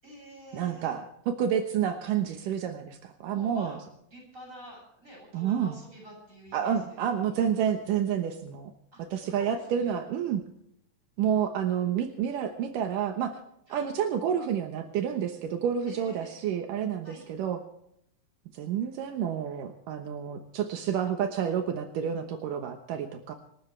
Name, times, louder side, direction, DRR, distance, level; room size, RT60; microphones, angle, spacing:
voice 1, 0.0-1.0 3.3-7.3 8.9-10.0 13.7-13.9 15.9-16.4 17.0-17.3, equal, 20° right, -1 dB, 8.4 m, -48 dB
voice 2, 0.5-3.7 5.3-5.8 6.5-8.7 9.1-10.4 11.2-13.3 13.7-17.6 18.5-23.3, right 8 dB, 80° right, 6 dB, 2.8 m, -29 dB
27.0 x 13.0 x 3.3 m, 0.75 s
omnidirectional pair, 3.8 m